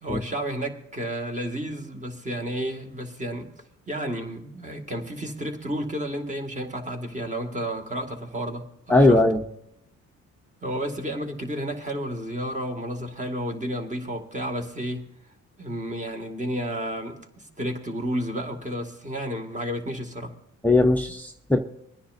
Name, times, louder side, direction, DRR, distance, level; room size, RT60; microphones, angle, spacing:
voice 1, 0.0-3.5 3.9-9.2 10.6-15.1 15.6-20.3, equal, 25° right, 2.1 m, -31 dB
voice 2, 8.9-9.4 20.6-21.6, left 2 dB, 5° left, 0.8 m, -19 dB
24.0 x 10.0 x 2.6 m
cardioid pair, 90°, 30 cm